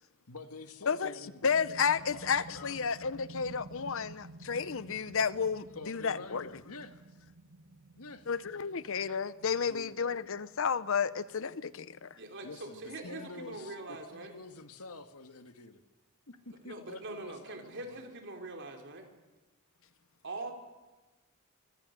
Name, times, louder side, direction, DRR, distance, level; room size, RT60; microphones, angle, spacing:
voice 1, 0.3-1.8 2.1-2.8 5.7-7.0 8.0-8.3 9.5-10.0 12.4-15.8 16.3-18.2, left 3 dB, 85° left, 1.8 m, -48 dB
sound 1, 1.1-12.5, right 3 dB, 90° right, 1.4 m, -53 dB
voice 2, 1.4-6.5 8.3-12.2, left 6 dB, 60° left, 0.7 m, -32 dB
voice 3, 12.1-14.3 16.7-19.1 20.2-20.5, right 2 dB, 55° right, 4.1 m, -43 dB
25.5 x 25.0 x 6.7 m
head